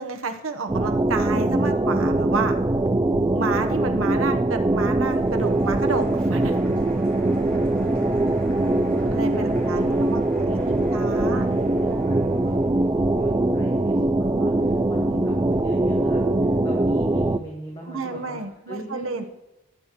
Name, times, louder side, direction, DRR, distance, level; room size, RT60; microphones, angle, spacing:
voice 1, 0.0-2.6 3.3-6.5 9.1-10.2 10.6-11.5 17.9-19.2, right 4 dB, 85° right, 5 dB, 1.1 m, -30 dB
sound 1, 0.7-17.4, right 2 dB, 15° right, 0.3 m, -22 dB
Applause, 4.6-13.7, right 1 dB, 5° left, 4.9 m, -50 dB
voice 2, 7.9-8.9 9.3-10.8 11.2-18.4 18.7-19.3, equal, 20° left, -2 dB, 1.7 m, -39 dB
21.0 x 8.4 x 3.1 m, 1.0 s
head